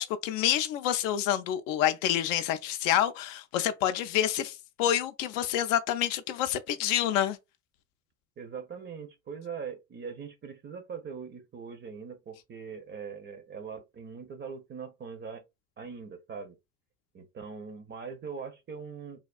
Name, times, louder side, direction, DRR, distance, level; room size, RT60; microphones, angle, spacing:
voice 1, 0.0-7.4, left 11 dB, 55° left, 0.5 m, -28 dB
voice 2, 8.4-15.4 15.8-16.6 17.1-19.2, right 6 dB, 25° right, 0.6 m, -41 dB
3.4 x 2.3 x 2.3 m
figure-of-eight pair, 70°, 48 cm